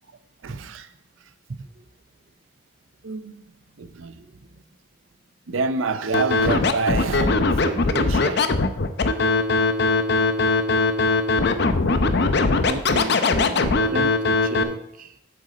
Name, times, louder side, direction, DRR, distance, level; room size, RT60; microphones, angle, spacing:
voice 1, 0.4-0.9 3.0-3.5 3.8-4.2 5.5-8.5, right 4 dB, 85° right, 0.6 m, -28 dB
Scratching (performance technique), 6.1-14.6, left 3 dB, 60° left, 0.7 m, -20 dB
voice 2, 12.7-14.8, right 2 dB, 45° right, 0.5 m, -32 dB
7.9 x 7.8 x 4.2 m
head